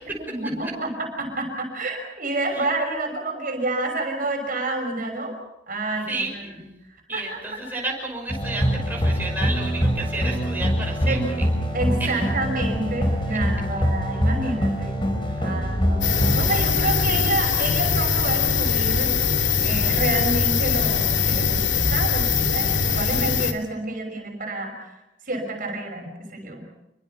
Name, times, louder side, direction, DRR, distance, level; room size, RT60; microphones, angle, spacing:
voice 1, 0.3-5.4 5.7-6.6 7.1-7.4 11.1-11.3 11.7-15.0 15.4-19.2 19.6-24.9 25.3-26.6, right 2 dB, 50° right, 4 dB, 5.9 m, -29 dB
voice 2, 6.1-6.5 7.1-11.2 12.0-12.2, right 2 dB, 10° right, -1 dB, 6.0 m, -31 dB
sound 1, 8.3-16.5, equal, 30° left, 4.7 m, -24 dB
sound 2, 16.0-23.5, left 5 dB, 80° left, 2.4 m, -22 dB
28.0 x 23.5 x 5.7 m, 0.90 s
head